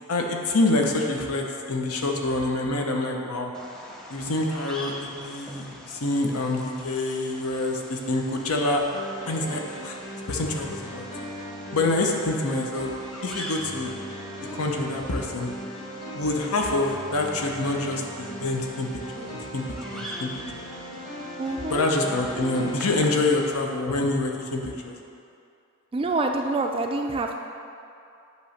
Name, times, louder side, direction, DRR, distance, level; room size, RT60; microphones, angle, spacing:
voice 1, 0.1-3.5 4.1-4.9 5.2-8.8 9.3-10.0 10.3-11.1 11.7-12.9 13.2-13.9 14.5-15.5 16.1-18.9 19.1-20.6 21.7-25.0, left 2 dB, 85° left, 1 dB, 0.8 m, -26 dB
Bird vocalization bird call bird song, 3.5-23.5, equal, 5° left, 0.7 m, -44 dB
sound 1, 8.7-23.0, right 1 dB, 35° left, 1.4 m, -38 dB
voice 2, 21.4-21.9 25.9-27.3, right 2 dB, 25° right, 3 dB, 0.3 m, -26 dB
8.3 x 3.1 x 6.4 m, 2.6 s
head